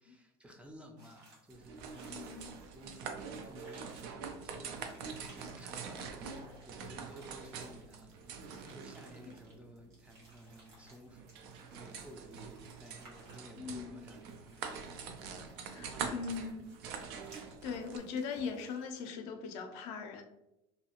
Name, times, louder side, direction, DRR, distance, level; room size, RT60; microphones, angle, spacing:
voice 1, 0.0-16.5, equal, 10° right, 3 dB, 0.3 m, -55 dB
sound 1, 1.0-19.1, right 2 dB, 70° right, 1.2 m, -61 dB
sound 2, 1.5-18.0, right 6 dB, 90° right, 0.4 m, -45 dB
voice 2, 2.1-2.5 13.6-14.0 15.6-16.6 17.3-20.2, left 5 dB, 70° left, 5 dB, 0.5 m, -40 dB
2.6 x 2.4 x 2.8 m, 0.91 s
supercardioid pair, 125°, 12 cm